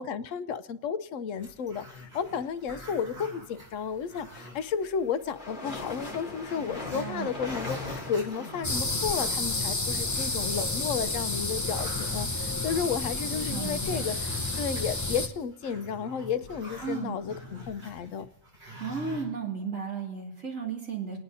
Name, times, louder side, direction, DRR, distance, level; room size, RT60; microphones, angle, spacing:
voice 1, 0.0-18.3, left 6 dB, 80° left, 13 dB, 1.0 m, -33 dB
Growling, 1.4-4.9 5.2-5.3 5.6-10.8 11.2-19.2, left 1 dB, 55° right, 5.9 m, -45 dB
sound 1, 4.1-9.2, left 2 dB, 40° left, 1.4 m, -40 dB
voice 2, 6.9-7.3 13.3-14.1 16.8-17.1 18.8-21.2, right 6 dB, 85° right, -2 dB, 2.8 m, -34 dB
sound 2, 8.6-15.3, left 2 dB, 20° left, 0.6 m, -30 dB
29.5 x 10.0 x 2.7 m, 0.85 s
omnidirectional pair, 1.3 m